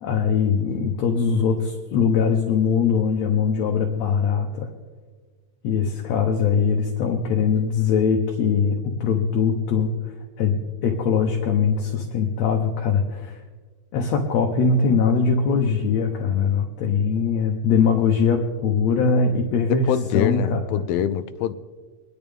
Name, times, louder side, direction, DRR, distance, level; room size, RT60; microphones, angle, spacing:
voice 1, 0.0-4.7 5.6-9.9 10.4-13.4 13.9-20.9, left 6 dB, 70° left, 2 dB, 1.7 m, -21 dB
voice 2, 19.9-21.6, left 10 dB, 90° left, 10 dB, 2.4 m, -24 dB
23.5 x 11.0 x 3.5 m, 1.4 s
omnidirectional pair, 4.1 m